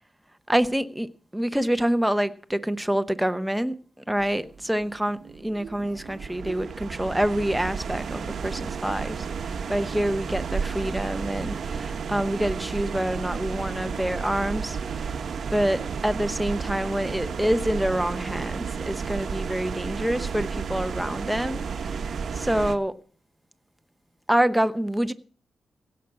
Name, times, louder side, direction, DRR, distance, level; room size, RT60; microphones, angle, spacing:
voice 1, 0.5-3.8 4.1-15.2 15.5-22.0 22.3-22.9 24.3-25.1, right 1 dB, 5° right, 0.7 m, -27 dB
sound 1, 4.2-22.7, right 6 dB, 60° right, 0.9 m, -32 dB
16.5 x 6.0 x 8.5 m
wide cardioid pair, 130°, 0 cm